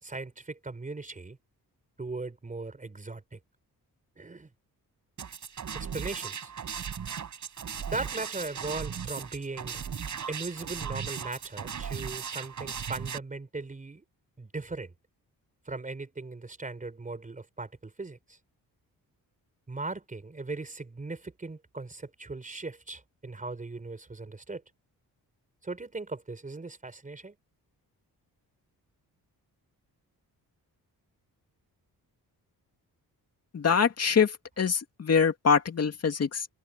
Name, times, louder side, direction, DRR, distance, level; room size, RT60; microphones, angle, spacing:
voice 1, 0.0-1.4 2.0-3.4 4.2-4.5 5.7-6.5 7.9-9.8 10.3-14.0 14.4-14.9 15.6-18.4 19.7-24.6 25.6-27.3, right 3 dB, 20° right, 4.6 m, -38 dB
sound 1, 5.2-13.2, right 7 dB, 50° right, 5.4 m, -37 dB
voice 2, 33.5-36.5, left 6 dB, 40° left, 2.4 m, -24 dB
wide cardioid pair, 145°, 37 cm